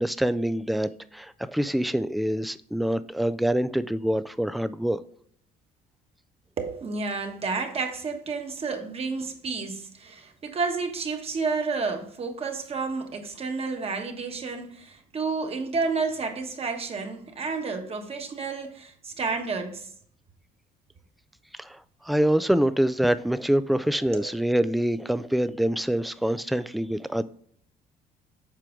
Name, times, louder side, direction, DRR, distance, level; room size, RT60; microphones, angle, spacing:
voice 1, 0.0-5.0 21.6-27.2, right 1 dB, ahead, 0.3 m, -25 dB
voice 2, 6.6-19.9 23.9-24.3, right 4 dB, 35° right, 1.3 m, -31 dB
7.5 x 4.9 x 3.7 m
cardioid pair, 110°, 17 cm